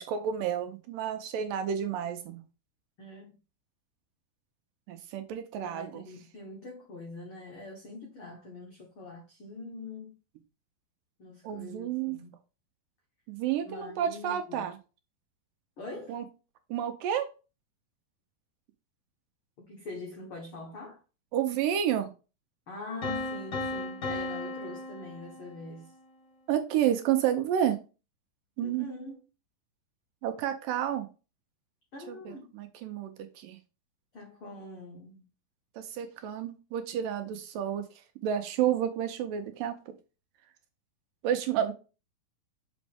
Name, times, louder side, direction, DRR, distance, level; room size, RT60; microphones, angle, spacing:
voice 1, 0.0-2.4 4.9-6.0 11.4-12.2 13.3-14.7 16.1-16.2 16.7-17.3 21.3-22.1 26.5-27.8 28.6-28.9 30.2-31.1 32.1-33.6 35.8-37.8 38.2-39.7 41.2-41.7, right 10 dB, 75° right, 2.2 m, -30 dB
voice 2, 3.0-3.3 5.6-10.1 11.2-12.3 13.6-14.7 15.8-16.2 19.7-21.0 22.7-25.9 28.6-29.2 31.9-32.5 34.1-35.2, left 2 dB, 80° left, 1.2 m, -43 dB
sound 1, 23.0-25.9, left 2 dB, 40° left, 1.5 m, -36 dB
6.1 x 5.1 x 3.5 m
omnidirectional pair, 4.3 m